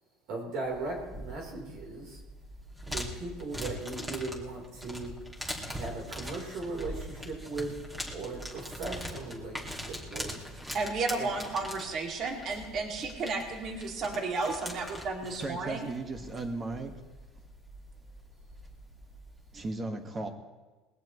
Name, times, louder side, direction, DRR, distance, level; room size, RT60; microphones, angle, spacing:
voice 1, 0.3-2.2 2.8-5.1 5.7-7.7 8.1-10.4 11.2-11.3, right 3 dB, 65° right, -1 dB, 4.0 m, -38 dB
sound 1, 0.6-19.7, equal, 10° right, 2.2 m, -42 dB
voice 2, 10.7-15.9, right 3 dB, 45° right, 1 dB, 2.6 m, -33 dB
voice 3, 15.2-16.9 19.5-20.3, right 2 dB, 25° right, 5 dB, 1.7 m, -36 dB
20.5 x 16.5 x 3.2 m, 1.2 s
supercardioid pair, 120°, 0 cm